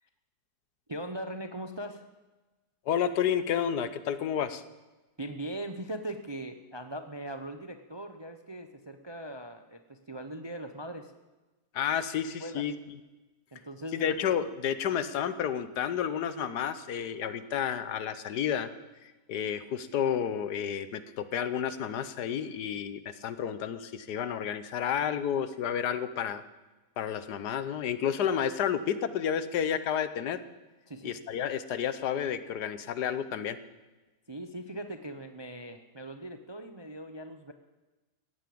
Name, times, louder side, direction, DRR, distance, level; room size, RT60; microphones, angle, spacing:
voice 1, 0.9-2.0 5.2-11.1 12.4-12.6 13.5-14.1 30.9-31.2 34.3-37.5, right 1 dB, 25° right, 8 dB, 0.5 m, -40 dB
voice 2, 2.9-4.6 11.7-12.7 13.9-18.7 19.3-26.4 27.0-30.4 31.0-33.6, left 8 dB, 75° left, 13 dB, 1.4 m, -31 dB
16.0 x 9.6 x 8.6 m, 1.1 s
omnidirectional pair, 1.8 m